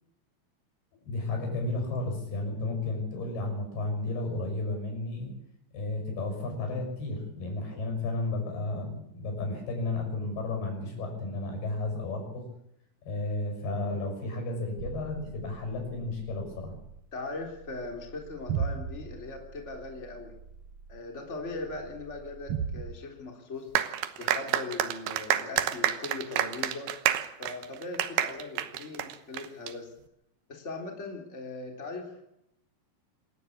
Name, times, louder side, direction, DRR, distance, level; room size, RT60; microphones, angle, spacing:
voice 1, 1.0-5.3 5.7-12.5 13.1-16.7, left 2 dB, 90° left, 3 dB, 8.4 m, -33 dB
sound 1, 14.8-22.9, right 7 dB, 70° right, 1.4 m, -39 dB
voice 2, 17.1-20.3 20.9-23.7 24.2-26.9 27.4-29.9 30.5-32.2, left 3 dB, 20° left, 2 dB, 3.6 m, -39 dB
sound 2, 23.7-29.7, right 11 dB, 85° right, 3.1 m, -29 dB
27.5 x 12.5 x 8.6 m, 0.78 s
omnidirectional pair, 4.4 m